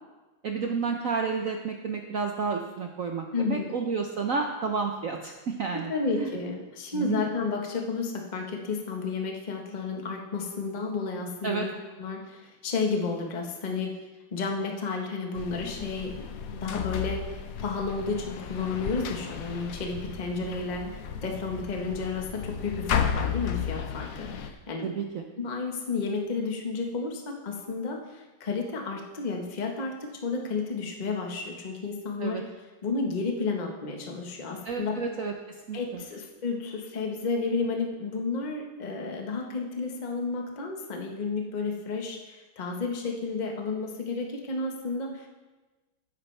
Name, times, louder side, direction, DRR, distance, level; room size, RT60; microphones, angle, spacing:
voice 1, 0.4-6.3 6.9-7.2 11.4-11.7 24.8-25.2 32.2-32.4 34.6-35.3 35.7-36.0, right 5 dB, 80° right, 2 dB, 0.7 m, -31 dB
voice 2, 3.3-3.7 5.9-11.7 12.0-14.0 14.3-16.3 16.6-24.9 25.4-32.4 32.8-35.0 35.7-45.3, left 4 dB, 25° left, 1 dB, 1.0 m, -32 dB
sound 1, 15.4-24.5, left 7 dB, 80° left, 0.7 m, -34 dB
13.0 x 9.8 x 3.3 m, 1.2 s
omnidirectional pair, 2.4 m